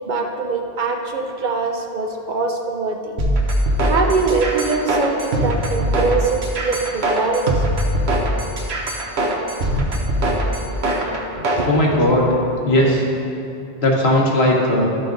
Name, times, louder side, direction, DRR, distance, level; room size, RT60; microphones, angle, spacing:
voice 1, 0.1-3.1 3.8-7.6 11.6-11.7, right 4 dB, 55° right, 2 dB, 0.8 m, -22 dB
sound 1, 3.2-11.7, right 1 dB, 85° right, 1.3 m, -21 dB
voice 2, 11.4-12.3 12.6-13.1 13.8-14.9, left 1 dB, 80° left, -2 dB, 1.6 m, -17 dB
12.5 x 5.8 x 3.9 m, 2.7 s
omnidirectional pair, 1.1 m